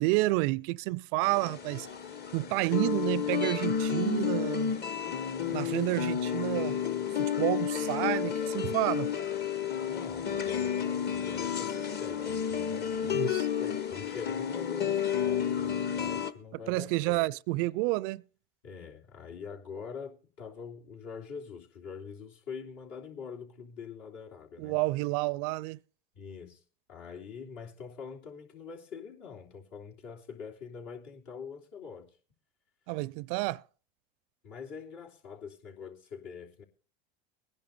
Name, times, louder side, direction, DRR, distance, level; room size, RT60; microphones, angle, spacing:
voice 1, 0.0-1.9 2.3-4.8 5.5-6.8 7.2-9.1 13.0-13.4 16.7-18.2 24.6-25.8 32.9-33.6, right 21 dB, 60° right, 0.5 m, -30 dB
sound 1, 1.2-16.3, left 8 dB, 35° left, 1.1 m, -31 dB
voice 2, 9.9-10.8 11.1-17.2 18.6-24.8 26.1-26.6 26.9-32.2 34.4-36.6, left 6 dB, 65° left, 3.4 m, -44 dB
21.5 x 10.5 x 2.7 m
hypercardioid pair, 100°, 30 cm